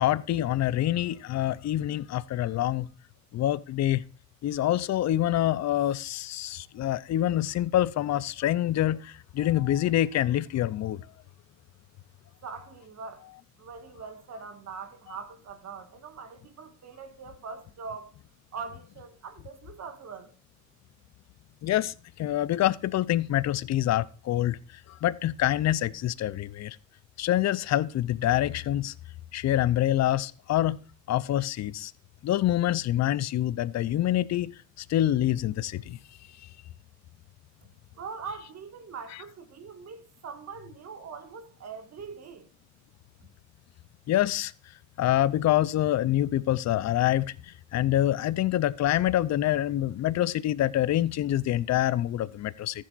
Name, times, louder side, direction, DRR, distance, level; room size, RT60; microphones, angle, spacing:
voice 1, 0.0-2.9 3.3-4.0 4.4-11.0 21.6-24.6 24.9-26.8 27.2-28.9 29.3-30.8 31.1-31.9 32.2-36.0 44.1-44.5 45.0-52.8, left 13 dB, 60° left, 0.6 m, -26 dB
voice 2, 12.4-13.3 13.6-18.2 18.5-20.3 37.9-42.5, right 5 dB, 60° right, 1.8 m, -42 dB
14.0 x 7.6 x 2.5 m
cardioid pair, 90°, 30 cm